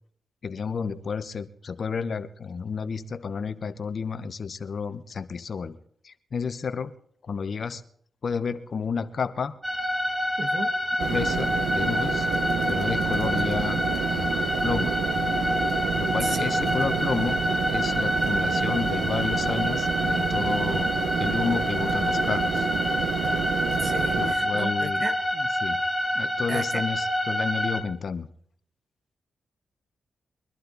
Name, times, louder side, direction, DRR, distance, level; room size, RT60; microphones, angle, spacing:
voice 1, 0.4-5.8 6.0-6.9 7.2-7.8 8.2-9.6 11.1-12.3 12.7-15.0 15.9-17.4 17.7-22.7 24.2-25.0 25.3-25.8 26.1-28.3, left 5 dB, 60° left, 12 dB, 0.9 m, -31 dB
sound 1, 9.6-27.8, equal, 10° right, 1.9 m, -27 dB
voice 2, 10.4-10.7 16.2-16.6 18.0-18.3 23.8-25.1 26.5-26.8, right 3 dB, 50° right, 9 dB, 1.6 m, -34 dB
sound 2, 11.0-24.3, right 6 dB, 90° right, 1.3 m, -29 dB
23.0 x 11.5 x 4.0 m, 0.62 s
cardioid pair, 60°, 0 cm